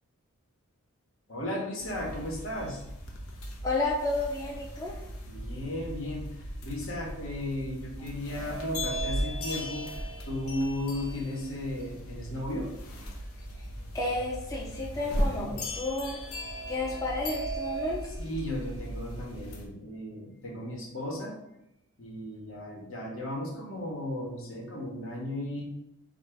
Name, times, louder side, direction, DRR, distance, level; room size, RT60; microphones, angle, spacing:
voice 1, 1.3-2.8 5.3-12.7 18.2-21.4 22.0-25.6, left 1 dB, 65° left, -1 dB, 1.2 m, -35 dB
sound 1, 1.8-19.7, left 1 dB, 85° left, 0.8 m, -38 dB
voice 2, 3.6-5.0 13.9-16.2 16.7-18.0, left 2 dB, 15° left, -3 dB, 0.5 m, -31 dB
sound 2, 8.3-12.3 12.7-12.8 13.7-13.8 14.2-18.1, right 5 dB, 35° right, 0.4 m, -41 dB
3.8 x 2.9 x 4.5 m, 0.84 s
head